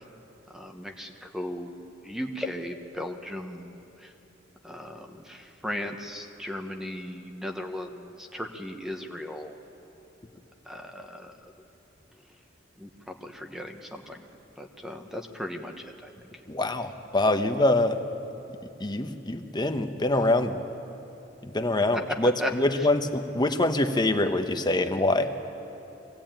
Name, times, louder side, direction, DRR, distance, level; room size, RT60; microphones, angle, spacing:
voice 1, 0.5-1.7 2.0-3.7 4.0-4.1 4.6-9.6 10.7-11.3 12.8-14.2 14.6-16.1 21.9-22.0 22.4-22.5, left 1 dB, 5° right, 4 dB, 1.1 m, -36 dB
voice 2, 16.5-18.0 18.8-20.6 21.4-25.3, left 2 dB, 20° left, 7 dB, 1.0 m, -25 dB
23.5 x 16.5 x 9.0 m, 3.0 s
head